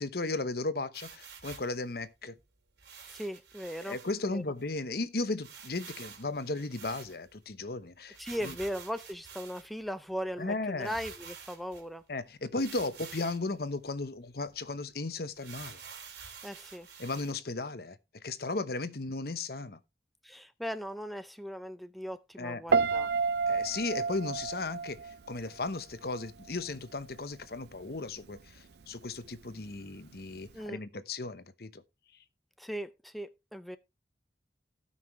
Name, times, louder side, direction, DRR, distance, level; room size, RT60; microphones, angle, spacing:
voice 1, 0.0-2.4 3.9-8.2 8.4-8.5 10.4-10.9 12.1-15.8 17.0-19.8 22.4-22.6 23.5-31.8, left 3 dB, 60° left, 1.0 m, -35 dB
sound 1, 0.9-1.8 2.8-4.1 4.6-4.7 4.9-5.0 5.4-7.4 8.1-9.8 10.4-10.5 10.8-11.8 12.6-13.5 14.0-14.1 14.5-14.6 15.4-17.3, right 6 dB, 85° right, 3.5 m, -48 dB
voice 2, 3.1-4.0 4.2-4.4 8.2-12.0 16.4-16.9 20.2-23.1 30.5-30.8 32.6-33.8, equal, ahead, 0.5 m, -38 dB
Piano, 22.7-25.8 26.1-26.5, right 5 dB, 65° right, 0.5 m, -30 dB
17.5 x 5.9 x 3.2 m
head